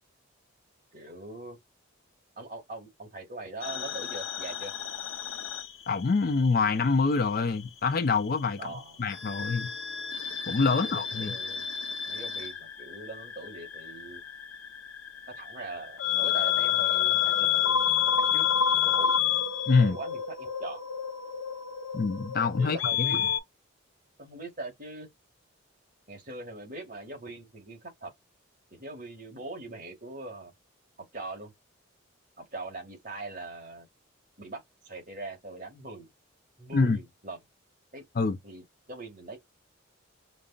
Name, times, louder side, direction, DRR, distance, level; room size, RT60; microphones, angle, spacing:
voice 1, 0.9-1.6 2.4-4.7 8.6-9.0 10.7-11.7 12.1-14.2 15.3-18.5 18.8-19.1 19.8-20.8 22.6-23.2 24.2-25.1 26.1-28.1 28.7-30.5 31.1-31.5 32.4-33.9 34.4-36.1 36.6-37.4 37.9-38.0 38.4-39.4, right 2 dB, 40° right, 2.0 m, -42 dB
sound 1, 3.6-6.5 6.7-7.9 9.1-23.4, left 9 dB, 70° left, 0.8 m, -29 dB
voice 2, 5.9-8.7 9.0-9.7 10.5-11.3 19.7-20.0 21.9-23.2 36.7-37.0 38.2-38.4, left 4 dB, 45° left, 0.4 m, -25 dB
5.2 x 2.0 x 2.4 m
head